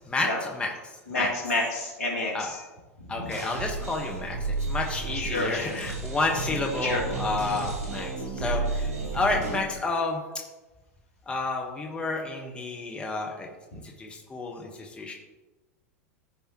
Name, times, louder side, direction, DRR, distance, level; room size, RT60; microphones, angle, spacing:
voice 1, 0.1-0.7 1.1-1.3 2.3-2.5 3.1-8.9 9.1-10.2 11.3-13.5 14.0-15.1, left 3 dB, 10° left, 0 dB, 1.4 m, -30 dB
voice 2, 1.1-2.6 3.1-3.3 5.1-5.8 6.8-7.0 9.0-9.1 13.7-13.8, left 2 dB, 70° left, -2 dB, 2.9 m, -29 dB
sound 1, 3.3-9.6, right 3 dB, 70° right, 2.9 m, -32 dB
15.0 x 5.4 x 3.0 m, 1.1 s
figure-of-eight pair, 90°, 8 cm